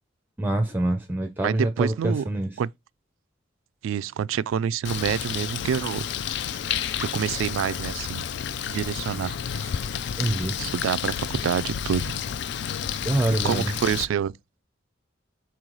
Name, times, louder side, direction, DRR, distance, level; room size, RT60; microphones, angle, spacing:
voice 1, 0.4-2.5 10.2-10.6 13.0-13.7, right 1 dB, 10° right, 0.5 m, -25 dB
voice 2, 1.4-2.3 2.6-2.7 3.8-6.0 7.0-8.2 8.7-9.7 10.6-12.2 13.4-14.3, right 8 dB, 85° right, 0.3 m, -27 dB
Bird, 4.8-14.0, left 8 dB, 60° left, 0.3 m, -30 dB
4.4 x 3.1 x 3.8 m
head